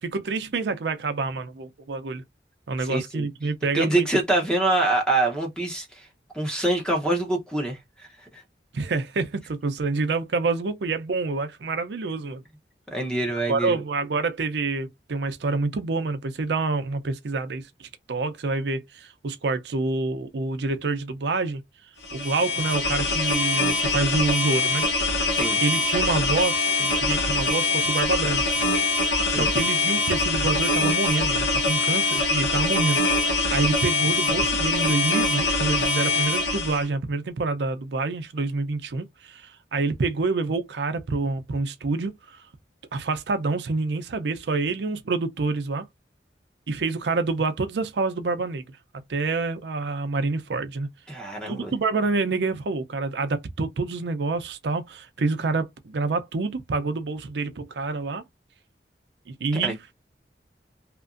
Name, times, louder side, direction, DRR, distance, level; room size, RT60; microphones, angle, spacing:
voice 1, 0.0-2.2 2.7-4.1 8.7-12.4 13.5-17.7 18.1-21.6 22.1-25.3 25.6-28.6 29.3-33.0 33.5-42.4 42.9-45.9 46.7-48.8 49.1-50.9 51.5-58.2 59.3-59.8, right 3 dB, 75° right, 0.5 m, -27 dB
voice 2, 2.8-3.3 3.7-6.1 6.3-8.4 12.9-13.8 25.3-25.6 29.3-29.5 51.1-51.7 59.6-59.7, right 2 dB, 5° left, 0.7 m, -25 dB
sound 1, 22.0-36.8, left 3 dB, 80° left, 0.9 m, -23 dB
2.8 x 2.5 x 2.4 m
head